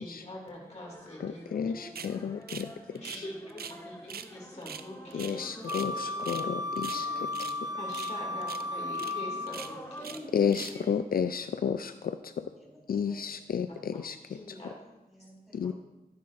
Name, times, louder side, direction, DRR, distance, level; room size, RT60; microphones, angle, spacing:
voice 1, 0.0-1.4 2.1-2.3 2.9-5.5 7.8-10.6 13.7-14.7 15.6-15.7, left 1 dB, 45° left, -2 dB, 2.5 m, -44 dB
Bhutan - Festival Folk Song, 0.6-10.9, equal, 15° left, 1.6 m, -47 dB
voice 2, 1.2-2.7 5.1-7.3 10.3-12.5 12.9-14.2 15.5-15.7, left 7 dB, 75° left, 10 dB, 0.4 m, -31 dB
sound 1, 1.9-2.1 2.5-2.7 2.9-3.8 4.1-4.3 4.6-5.9 6.2-6.5 6.7-7.6 7.9-8.2 8.4-8.6 8.9-9.1 9.5-10.2 10.5-10.8, right 7 dB, 90° right, 0.5 m, -43 dB
voice 3, 2.7-3.5 6.0-6.1 12.6-13.4 14.5-15.7, right 1 dB, ahead, -5 dB, 4.4 m, -58 dB
Wind instrument woodwind instrument, 5.6-9.7, left 2 dB, 25° right, 0.9 m, -34 dB
15.0 x 9.8 x 2.6 m, 1.0 s
wide cardioid pair, 110°, 15 cm